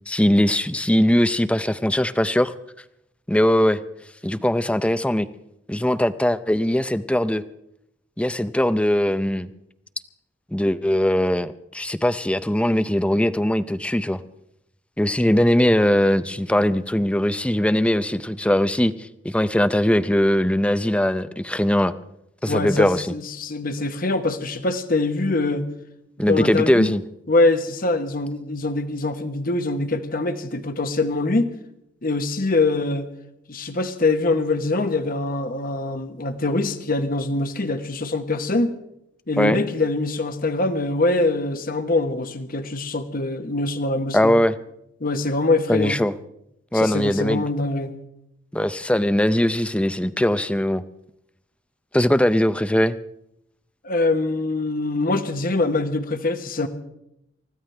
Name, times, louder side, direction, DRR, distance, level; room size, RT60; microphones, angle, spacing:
voice 1, 0.1-2.5 3.3-3.8 4.2-5.3 5.7-7.4 8.2-9.5 10.5-14.2 15.0-21.9 22.4-23.1 26.2-27.0 39.4-39.6 44.1-44.6 45.7-46.1 46.7-47.4 48.5-50.8 51.9-53.0, left 1 dB, 5° left, 13 dB, 0.5 m, -20 dB
voice 2, 22.5-25.7 26.2-26.9 27.3-31.5 32.0-33.1 33.5-38.7 39.3-44.4 45.0-46.0 46.7-48.0 53.8-56.7, left 2 dB, 50° left, 8 dB, 1.2 m, -23 dB
29.0 x 14.5 x 3.3 m, 0.81 s
head